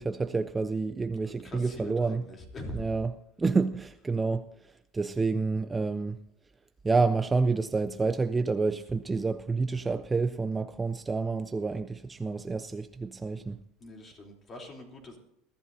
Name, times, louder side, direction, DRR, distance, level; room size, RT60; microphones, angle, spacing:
voice 1, 0.0-2.2 2.7-3.1 3.4-6.2 6.8-13.6, right 4 dB, 10° right, 0.4 m, -29 dB
voice 2, 1.2-2.9 13.8-15.2, left 1 dB, 25° left, 3.2 m, -43 dB
22.0 x 14.0 x 2.7 m
cardioid pair, 155°, 0 cm